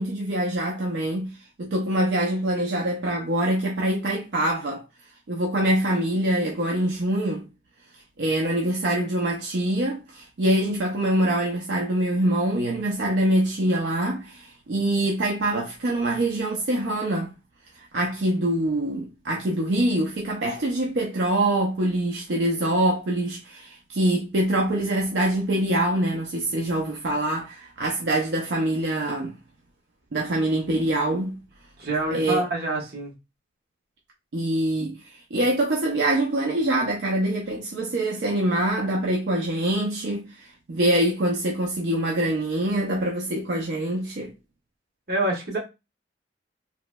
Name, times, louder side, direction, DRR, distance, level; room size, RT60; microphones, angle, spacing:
voice 1, 0.0-1.3 1.6-4.8 5.3-7.4 8.2-17.3 17.9-29.3 30.1-31.4 32.1-32.4 34.3-35.0 35.3-44.3, right 1 dB, 75° right, 0.5 m, -24 dB
voice 2, 31.8-33.1 45.1-45.6, right 1 dB, 60° right, 1.2 m, -26 dB
3.0 x 2.9 x 2.2 m
head